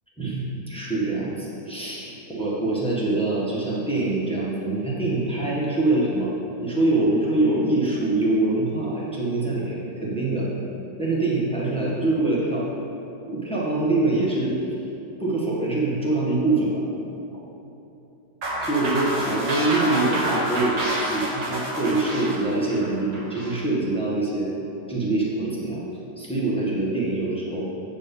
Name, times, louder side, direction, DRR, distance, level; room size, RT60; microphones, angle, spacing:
voice 1, 0.2-6.3 6.6-10.5 11.0-12.7 13.2-14.5 15.2-16.8 18.6-24.5 24.9-25.8 26.2-27.7, right 2 dB, 5° left, -6 dB, 1.3 m, -24 dB
sound 1, 18.4-23.6, right 1 dB, 70° right, 2.1 m, -28 dB
8.6 x 4.5 x 7.0 m, 2.9 s
omnidirectional pair, 2.0 m